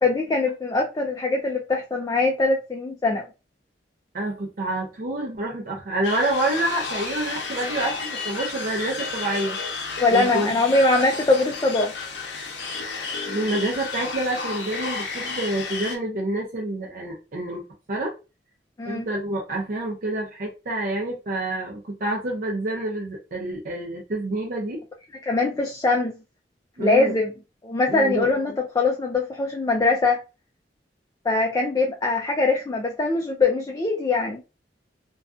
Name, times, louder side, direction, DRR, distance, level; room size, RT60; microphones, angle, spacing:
voice 1, 0.0-3.3 10.0-11.9 18.8-19.1 25.3-26.1 26.8-27.3 27.6-30.2 31.2-34.4, left 3 dB, 20° left, 0.3 m, -22 dB
voice 2, 4.1-9.6 10.1-10.5 13.2-17.6 17.9-18.1 18.9-24.8 26.8-27.1 27.9-28.3, right 1 dB, 50° right, 0.5 m, -27 dB
sound 1, 6.0-16.0, left 4 dB, 90° left, 0.6 m, -32 dB
2.3 x 2.3 x 2.4 m
head